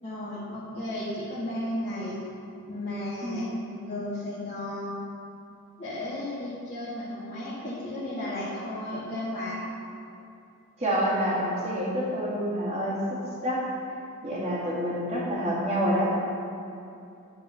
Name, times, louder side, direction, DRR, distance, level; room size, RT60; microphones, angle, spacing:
voice 1, 0.0-2.2 2.7-3.5 3.8-5.0 5.8-9.6, left 1 dB, 30° left, -11 dB, 1.8 m, -34 dB
voice 2, 10.8-13.0 13.4-13.6 14.2-16.1, equal, 30° right, -6 dB, 2.1 m, -27 dB
11.5 x 4.8 x 5.6 m, 2.6 s
head